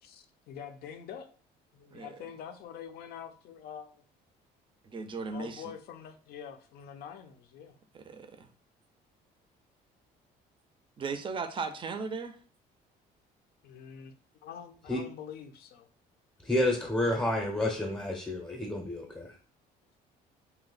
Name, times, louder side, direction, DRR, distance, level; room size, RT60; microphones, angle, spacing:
voice 1, 0.0-1.3 1.7-3.9 5.3-7.8 13.6-14.1 14.4-15.9, left 8 dB, 65° left, 8 dB, 0.5 m, -45 dB
voice 2, 1.9-2.3 4.8-5.7 7.9-8.5 11.0-12.4, right 4 dB, 30° right, 8 dB, 0.4 m, -37 dB
voice 3, 16.4-19.3, left 1 dB, 10° left, -1 dB, 0.6 m, -30 dB
2.8 x 2.1 x 3.8 m, 0.42 s
cardioid pair, 110°, 17 cm